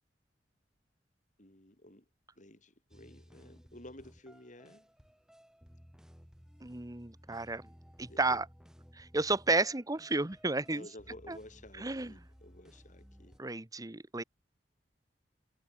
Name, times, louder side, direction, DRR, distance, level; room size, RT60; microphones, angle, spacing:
voice 1, 1.4-2.0 2.4-4.9 8.1-8.4 10.6-13.4, left 1 dB, 45° left, 6.8 m, -53 dB
sound 1, 2.9-13.4, equal, 5° right, 6.3 m, -58 dB
voice 2, 6.6-7.6 8.0-8.4 9.0-10.8 11.3-11.4 11.8-12.1 13.4-14.2, right 3 dB, 20° right, 1.1 m, -32 dB
head